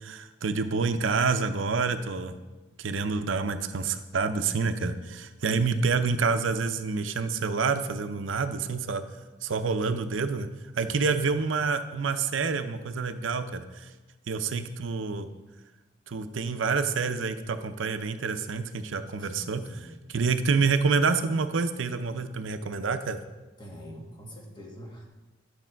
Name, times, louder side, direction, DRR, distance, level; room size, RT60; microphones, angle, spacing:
voice 1, 0.0-2.3 2.8-9.0 9.4-10.5 10.8-13.9 14.3-15.3 16.1-19.6 20.1-23.2, right 4 dB, 85° right, 9 dB, 0.6 m, -27 dB
voice 2, 10.8-11.3 19.2-20.0 23.6-25.1, equal, 25° left, -1 dB, 1.7 m, -45 dB
11.0 x 6.6 x 4.5 m, 1.2 s
head